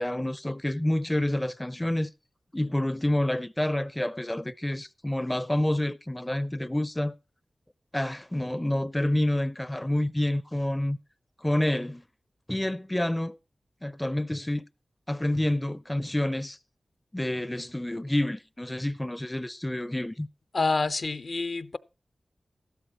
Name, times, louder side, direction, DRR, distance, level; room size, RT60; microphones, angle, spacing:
voice 1, 0.0-2.1 2.5-7.1 7.9-11.0 11.4-12.0 12.5-13.4 13.8-14.6 15.1-16.6 17.1-20.3, left 1 dB, 15° left, 0.5 m, -28 dB
voice 2, 20.5-21.8, left 3 dB, 60° left, 0.6 m, -27 dB
13.5 x 12.5 x 3.0 m
wide cardioid pair, 60°, 0 cm